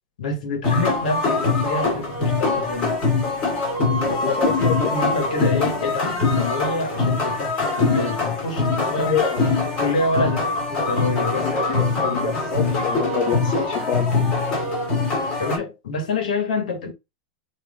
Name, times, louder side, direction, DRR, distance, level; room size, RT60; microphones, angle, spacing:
voice 1, 0.2-3.0 4.1-11.6 11.9-12.4 15.4-16.9, left 2 dB, 85° left, 1.7 m, -27 dB
sound 1, 0.6-15.6, left 3 dB, 30° left, 2.2 m, -23 dB
voice 2, 4.0-5.0 8.8-9.5 11.3-14.1, left 6 dB, 45° left, 1.4 m, -27 dB
4.0 x 3.2 x 3.7 m
supercardioid pair, 145°, 4 cm